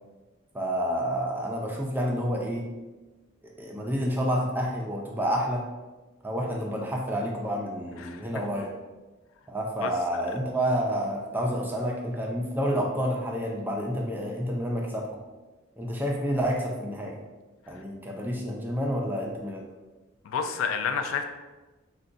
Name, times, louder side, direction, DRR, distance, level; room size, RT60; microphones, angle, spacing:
voice 1, 0.5-2.7 3.4-5.7 6.2-8.7 9.5-15.2 15.8-17.2 17.7-19.6, equal, 10° right, -1 dB, 0.4 m, -29 dB
voice 2, 20.2-21.2, left 6 dB, 85° left, 7 dB, 0.3 m, -29 dB
4.0 x 2.2 x 2.5 m, 1.2 s
head